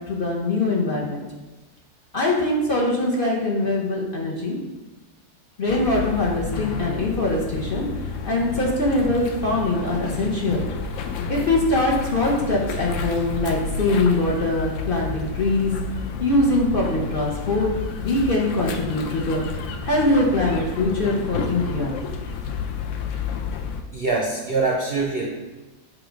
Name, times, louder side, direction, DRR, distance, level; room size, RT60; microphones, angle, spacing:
voice 1, 0.1-1.2 2.1-4.6 5.6-7.9 8.2-10.7 11.3-15.8 16.2-17.7 18.0-19.4 19.8-21.9, left 2 dB, 40° left, -3 dB, 0.9 m, -22 dB
sound 1, 5.7-23.8, left 5 dB, 70° left, 0.8 m, -30 dB
voice 2, 23.9-25.3, right 3 dB, 55° right, -1 dB, 0.7 m, -23 dB
7.7 x 2.6 x 5.1 m, 1.2 s
omnidirectional pair, 1.6 m